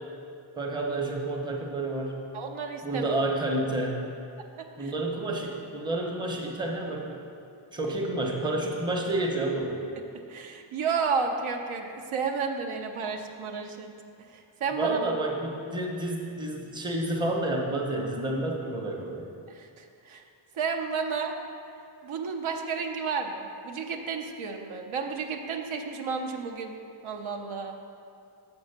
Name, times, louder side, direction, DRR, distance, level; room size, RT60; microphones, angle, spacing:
voice 1, 0.6-2.3 2.8-4.1 4.8-7.2 7.7-9.8 14.8-19.3, right 2 dB, 10° right, -1 dB, 0.7 m, -30 dB
voice 2, 2.3-3.1 4.6-4.9 10.3-13.9 14.2-15.0 19.5-20.2 20.5-21.4 22.0-26.7 27.0-27.8, right 5 dB, 75° right, 4 dB, 0.8 m, -32 dB
7.1 x 5.4 x 6.6 m, 2.4 s
wide cardioid pair, 165°, 49 cm